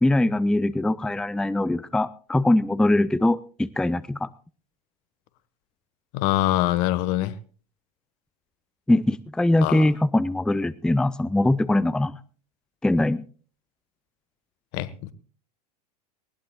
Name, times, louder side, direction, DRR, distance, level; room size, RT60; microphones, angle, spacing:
voice 1, 0.0-4.3 8.9-12.1 12.8-13.2, left 1 dB, 5° left, 18 dB, 0.6 m, -22 dB
voice 2, 6.1-7.3 9.6-9.9 14.7-15.1, left 15 dB, 55° left, 16 dB, 1.4 m, -24 dB
20.0 x 19.5 x 2.4 m, 0.40 s
hypercardioid pair, 90°, 20 cm